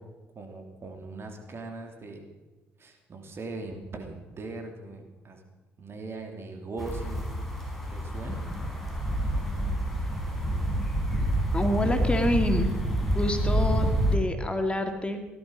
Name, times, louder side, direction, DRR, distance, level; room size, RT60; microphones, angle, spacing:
voice 1, 0.3-2.2 2.8-5.4 5.8-7.3 7.9-8.4, right 3 dB, 45° right, 5 dB, 3.1 m, -40 dB
sound 1, 6.8-14.2, equal, ahead, 5.0 m, -28 dB
voice 2, 11.5-12.7 13.1-15.2, left 1 dB, 20° left, 6 dB, 2.2 m, -27 dB
17.5 x 11.5 x 5.4 m, 1.2 s
hypercardioid pair, 50°, 6 cm